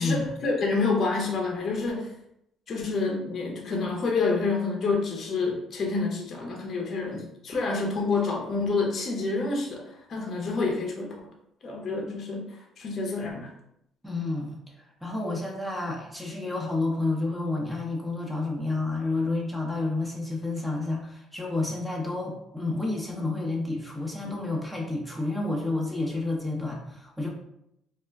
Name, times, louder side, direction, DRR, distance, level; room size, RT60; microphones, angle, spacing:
voice 1, 0.0-2.1 2.7-11.2 11.6-13.5, left 3 dB, 50° left, 0 dB, 0.5 m, -28 dB
voice 2, 14.0-14.6 15.0-27.3, left 2 dB, 5° right, -1 dB, 0.7 m, -30 dB
2.3 x 2.1 x 3.3 m, 0.80 s
supercardioid pair, 80°, 0 cm